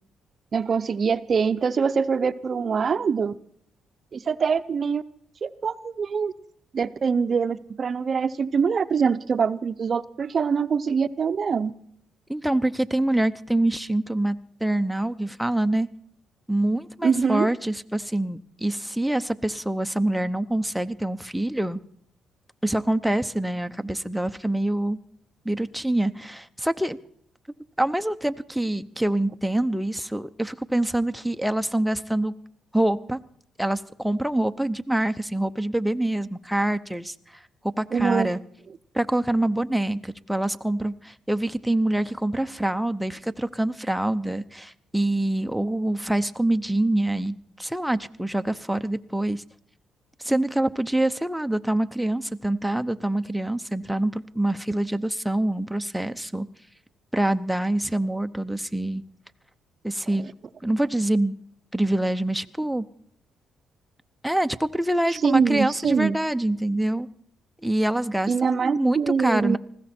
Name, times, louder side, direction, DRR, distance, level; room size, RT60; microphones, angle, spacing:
voice 1, 0.5-3.3 4.1-5.0 5.4-6.3 6.7-11.7 17.0-17.5 37.9-38.3 65.1-66.2 68.3-69.6, right 6 dB, 45° right, 13 dB, 0.7 m, -24 dB
voice 2, 12.3-14.4 14.6-15.9 16.5-21.8 22.6-25.0 25.4-27.0 27.8-32.3 32.7-33.2 33.6-38.4 38.9-49.4 50.2-56.5 57.1-59.0 59.8-60.3 60.6-61.3 61.7-62.8 64.2-67.1 67.6-68.3 68.6-69.6, right 1 dB, ahead, 8 dB, 0.7 m, -25 dB
20.0 x 15.5 x 4.4 m, 0.64 s
cardioid pair, 90°, 0 cm